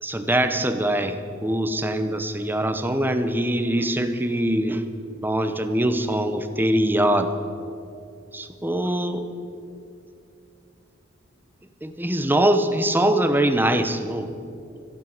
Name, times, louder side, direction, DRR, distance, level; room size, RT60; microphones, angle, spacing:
voice 1, 0.0-4.9 5.2-7.3 8.3-9.3 11.8-14.3, right 1 dB, 10° right, 8 dB, 0.8 m, -23 dB
14.0 x 11.0 x 7.3 m, 2.5 s
head